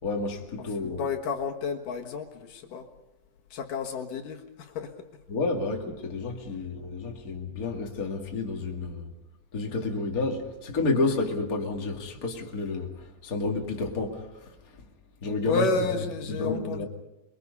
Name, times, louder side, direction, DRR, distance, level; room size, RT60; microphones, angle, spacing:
voice 1, 0.0-1.0 5.3-9.1 9.5-12.9 13.2-14.3 15.2-15.7 16.3-16.9, left 3 dB, 30° left, 2.5 m, -30 dB
voice 2, 0.8-2.8 3.5-4.9 15.4-16.9, left 4 dB, 75° left, 3.1 m, -31 dB
28.0 x 22.5 x 5.4 m
omnidirectional pair, 3.9 m